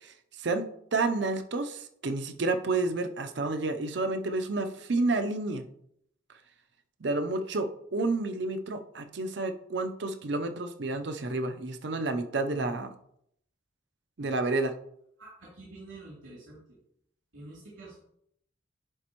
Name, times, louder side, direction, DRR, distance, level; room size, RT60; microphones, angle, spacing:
voice 1, 0.0-0.6 0.9-5.6 7.0-12.9 14.2-14.7, right 3 dB, 60° right, 8 dB, 0.6 m, -30 dB
voice 2, 15.2-16.6 17.3-18.0, right 2 dB, 90° right, -8 dB, 2.9 m, -47 dB
11.0 x 4.1 x 3.0 m, 0.72 s
head